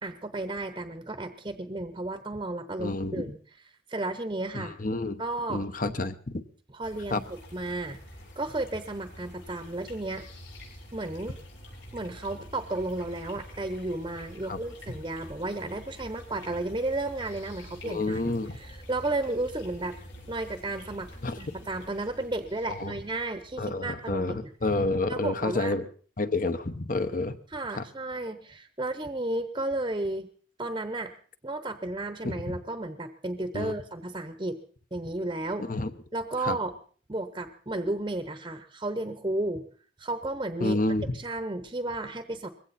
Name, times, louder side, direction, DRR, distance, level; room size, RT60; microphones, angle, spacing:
voice 1, 0.0-3.4 3.9-4.7 5.2-5.7 6.7-8.0 8.4-10.2 10.9-11.4 11.9-18.2 18.5-20.0 20.3-24.5 25.1-25.7 27.5-30.3 30.6-31.1 31.4-34.6 34.9-35.8 36.1-36.7 37.1-39.7 40.0-40.8 41.1-42.5, right 2 dB, 25° right, 10 dB, 0.9 m, -33 dB
voice 2, 2.8-3.2 4.5-5.2 5.5-6.4 7.1-7.2 14.5-14.6 17.8-18.6 21.2-21.4 22.8-22.9 23.6-25.9 26.2-27.4 27.7-27.8 32.2-32.4 33.5-33.7 35.6-35.9 36.4-36.6 40.6-41.1, left 2 dB, 45° left, 11 dB, 1.1 m, -29 dB
sound 1, 6.8-25.0, equal, 80° left, 6.0 m, -47 dB
21.0 x 16.0 x 4.2 m, 0.44 s
head